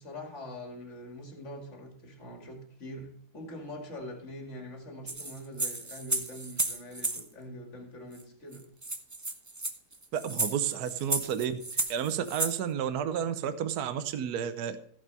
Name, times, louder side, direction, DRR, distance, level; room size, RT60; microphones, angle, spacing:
voice 1, 0.0-8.6, left 1 dB, 45° left, 3 dB, 2.5 m, -43 dB
sound 1, 5.1-7.2 8.2-8.3 8.5-8.6 8.8-12.6, right 2 dB, 25° right, 0.3 m, -33 dB
voice 2, 10.1-11.5 11.9-14.8, right 8 dB, 70° right, 10 dB, 1.3 m, -31 dB
15.5 x 5.5 x 5.3 m, 0.62 s
omnidirectional pair, 1.8 m